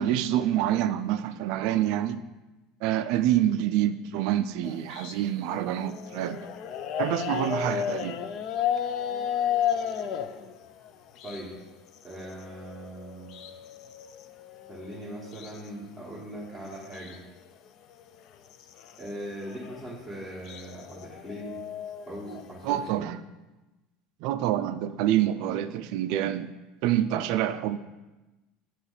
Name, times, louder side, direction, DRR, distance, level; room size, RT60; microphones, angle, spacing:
voice 1, 0.0-2.2 2.8-6.5 7.0-8.2 22.6-23.2 24.2-26.5 26.8-27.8, right 12 dB, 60° right, 0.3 m, -27 dB
sound 1, 4.6-11.7 12.0-15.7 16.1-16.2 16.4-17.2 17.5-22.8, left 9 dB, 45° left, 0.3 m, -34 dB
voice 2, 12.0-13.3 14.7-17.2 19.0-21.6 22.1-23.0, right 1 dB, ahead, 1.2 m, -40 dB
8.6 x 3.0 x 4.0 m
cardioid pair, 160°, 0 cm